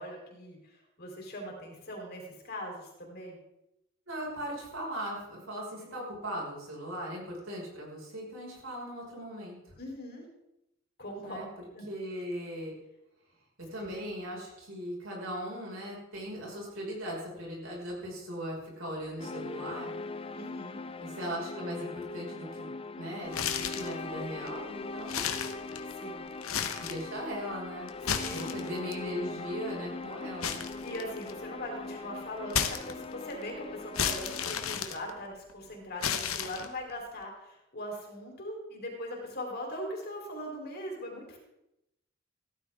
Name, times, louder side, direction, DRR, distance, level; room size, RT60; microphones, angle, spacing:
voice 1, 0.0-3.4 9.8-10.3 11.0-11.4 11.7-11.9 13.8-13.9 20.3-20.8 25.9-26.3 27.9-28.5 30.8-41.4, equal, 50° left, 0 dB, 4.0 m, -41 dB
voice 2, 4.1-9.8 11.2-11.5 11.9-12.7 13.7-19.9 21.0-25.5 26.8-27.9 28.3-30.6, equal, 70° right, -3 dB, 5.9 m, -39 dB
sound 1, 19.2-34.8, left 3 dB, 25° left, 0.5 m, -41 dB
sound 2, 23.3-24.0 24.5-24.6 25.0-26.0 26.4-27.1 27.9-28.9 30.4-31.4 32.5-33.3 33.9-35.5 36.0-36.9, left 8 dB, 85° left, 1.3 m, -33 dB
16.0 x 13.5 x 3.7 m, 0.90 s
head